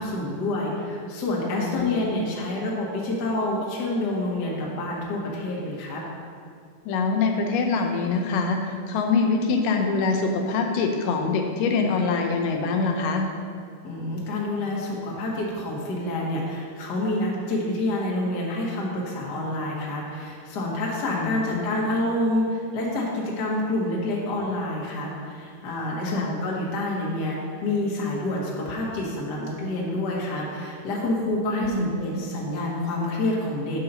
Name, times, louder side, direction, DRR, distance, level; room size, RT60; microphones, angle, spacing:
voice 1, 0.0-6.0 13.8-33.8, left 1 dB, 70° left, -3 dB, 0.9 m, -28 dB
voice 2, 1.6-2.1 6.9-13.3 21.1-21.7 26.0-26.3 31.6-31.9, left 4 dB, 85° left, 3 dB, 2.3 m, -24 dB
7.4 x 3.9 x 5.4 m, 2.3 s
omnidirectional pair, 3.8 m